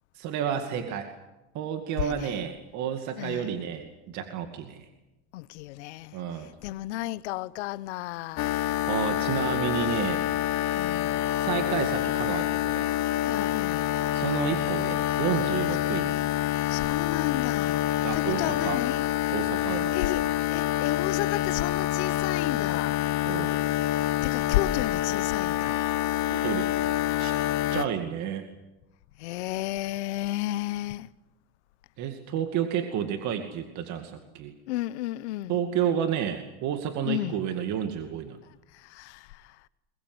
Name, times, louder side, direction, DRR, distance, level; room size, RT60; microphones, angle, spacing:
voice 1, 0.2-1.1 1.5-4.8 6.1-6.5 8.9-10.2 11.4-12.9 14.1-16.2 18.0-18.8 19.3-20.0 23.3-23.5 26.3-26.7 27.2-27.4 27.7-28.5 32.0-34.5 35.5-38.4, right 9 dB, 55° right, 2.4 m, -31 dB
voice 2, 2.0-2.4 3.2-3.5 5.3-8.6 10.7-11.2 13.3-14.0 15.8-16.0 16.7-19.0 19.7-23.1 24.2-25.8 29.2-31.1 34.7-35.6 37.0-37.5 38.4-39.7, left 16 dB, 85° left, 0.9 m, -33 dB
sound 1, 8.4-27.8, left 14 dB, 50° left, 1.3 m, -27 dB
22.5 x 22.0 x 8.0 m
supercardioid pair, 110°, 33 cm